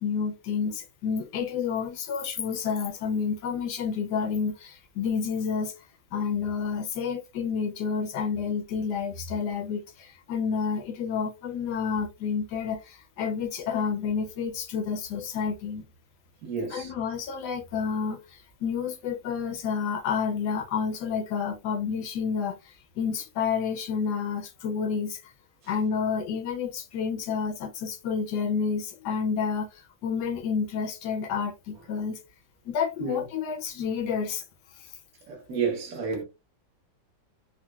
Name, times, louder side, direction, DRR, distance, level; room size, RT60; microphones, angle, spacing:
voice 1, 0.0-5.7 6.1-15.8 16.7-25.2 25.7-32.2 32.6-34.4 34.8-34.9, left 6 dB, 70° left, 1.0 m, -30 dB
voice 2, 16.4-16.9 33.0-33.3 35.3-36.2, right 5 dB, 55° right, 1.2 m, -31 dB
4.0 x 2.1 x 2.2 m
omnidirectional pair, 2.2 m